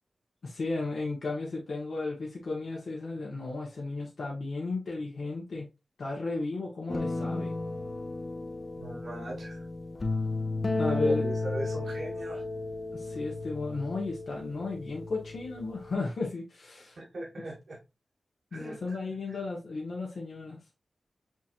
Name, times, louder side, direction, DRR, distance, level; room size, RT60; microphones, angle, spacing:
voice 1, 0.4-5.7 6.0-7.5 10.8-11.2 12.9-17.0 18.5-20.6, left 3 dB, 70° left, 1.2 m, -34 dB
sound 1, 6.9-15.9, left 2 dB, 45° left, 0.7 m, -34 dB
voice 2, 8.8-9.6 10.9-12.4 17.0-17.8 18.5-19.0 19.3-19.4, right 2 dB, 70° right, 1.7 m, -39 dB
6.0 x 2.9 x 2.5 m
cardioid pair, 50°, 0 cm